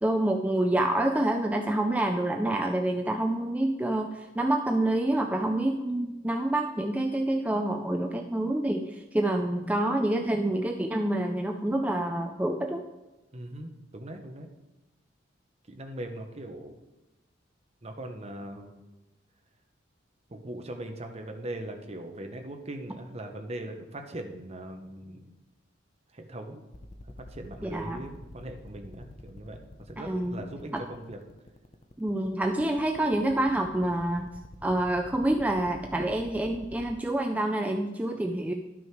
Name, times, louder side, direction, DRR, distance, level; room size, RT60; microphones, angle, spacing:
voice 1, 0.0-12.9 27.6-28.0 30.0-30.4 30.7-30.8 32.0-34.3 34.6-38.5, right 1 dB, 10° right, 3 dB, 0.4 m, -27 dB
voice 2, 13.3-14.5 15.7-16.7 17.8-18.8 20.3-25.3 26.1-26.6 27.2-31.2, right 1 dB, 35° right, 4 dB, 0.9 m, -40 dB
sound 1, 26.7-36.9, left 2 dB, 35° left, 0.7 m, -46 dB
11.0 x 6.2 x 4.7 m, 1.0 s
head